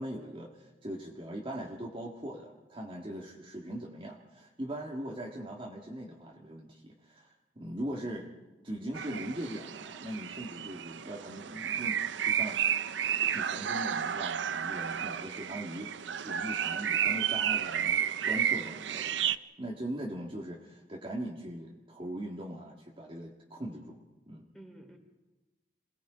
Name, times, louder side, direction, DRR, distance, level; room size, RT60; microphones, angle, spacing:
voice 1, 0.0-7.3 7.6-8.3 8.6-12.6 13.3-19.1 19.6-24.0 24.3-24.5, right 1 dB, 30° right, -2 dB, 1.8 m, -40 dB
voice 2, 8.0-8.5 24.5-25.0, right 1 dB, 5° left, 2 dB, 3.3 m, -52 dB
sound 1, 8.9-19.4, right 9 dB, 85° right, 0.6 m, -32 dB
27.5 x 18.5 x 5.1 m, 1.1 s
head